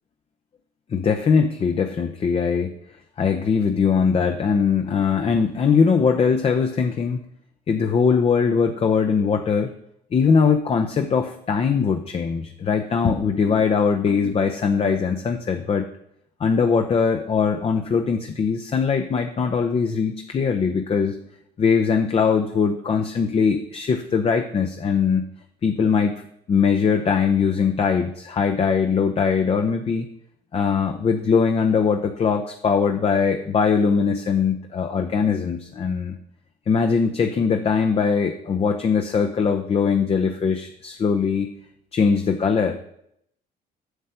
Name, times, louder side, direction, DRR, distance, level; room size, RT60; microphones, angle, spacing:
voice 1, 0.9-2.7 3.2-7.2 7.7-9.7 10.1-15.8 16.4-21.2 21.6-25.2 25.6-26.2 26.5-30.1 30.5-36.2 36.7-41.5 41.9-42.8, left 6 dB, 35° left, 5 dB, 0.7 m, -21 dB
8.1 x 6.4 x 5.7 m, 0.73 s
cardioid pair, 110°, 17 cm